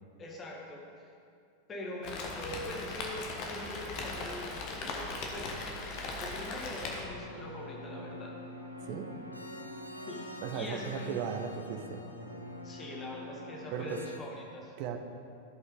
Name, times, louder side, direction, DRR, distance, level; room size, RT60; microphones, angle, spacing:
voice 1, 0.2-1.1 1.7-5.6 6.2-8.3 10.1-10.2 10.5-11.2 12.6-14.7, left 1 dB, 25° left, -2 dB, 2.0 m, -43 dB
Rain, 2.0-7.0, left 3 dB, 40° left, 1.3 m, -38 dB
sound 1, 7.0-14.2, left 1 dB, 90° left, 0.8 m, -45 dB
voice 2, 10.4-12.0 13.7-14.0 14.8-15.0, right 7 dB, 45° right, 4 dB, 0.9 m, -36 dB
15.0 x 5.5 x 3.8 m, 2.4 s
figure-of-eight pair, 90°, 0 cm